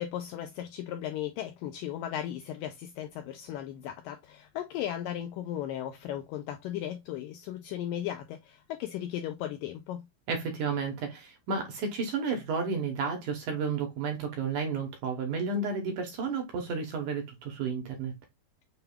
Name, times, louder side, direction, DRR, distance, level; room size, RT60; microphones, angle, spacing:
voice 1, 0.0-10.0, left 11 dB, 85° left, 2.0 m, -36 dB
voice 2, 10.3-18.1, right 5 dB, 65° right, 2.3 m, -32 dB
6.9 x 3.3 x 2.3 m
omnidirectional pair, 4.5 m